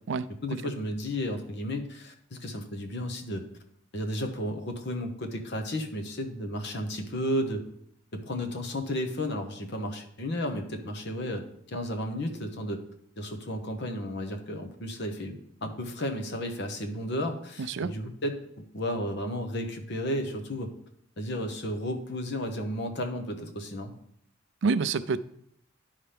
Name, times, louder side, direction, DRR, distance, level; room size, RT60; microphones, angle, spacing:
voice 1, 0.4-3.4 3.9-7.6 8.1-12.8 13.2-18.4 18.7-20.7 21.2-23.9, left 1 dB, 60° left, 5 dB, 1.0 m, -33 dB
voice 2, 24.6-25.2, right 4 dB, 65° right, 15 dB, 0.4 m, -27 dB
10.5 x 5.7 x 3.4 m, 0.71 s
head